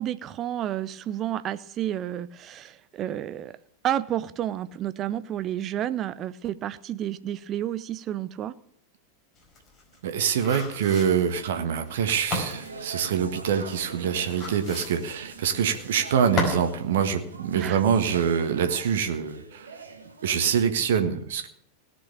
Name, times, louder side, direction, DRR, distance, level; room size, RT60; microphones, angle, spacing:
voice 1, 0.0-3.5 3.8-8.5 17.5-17.8, right 11 dB, 30° right, 15 dB, 0.7 m, -30 dB
sound 1, 9.4-16.7 17.0-17.1, left 2 dB, 25° left, 4.8 m, -34 dB
voice 2, 10.0-19.8 20.2-21.5, right 7 dB, 60° right, 8 dB, 1.6 m, -25 dB
sound 2, 12.4-20.5, right 3 dB, 75° right, 1.9 m, -43 dB
17.5 x 6.2 x 8.7 m, 0.68 s
figure-of-eight pair, 90°, 0 cm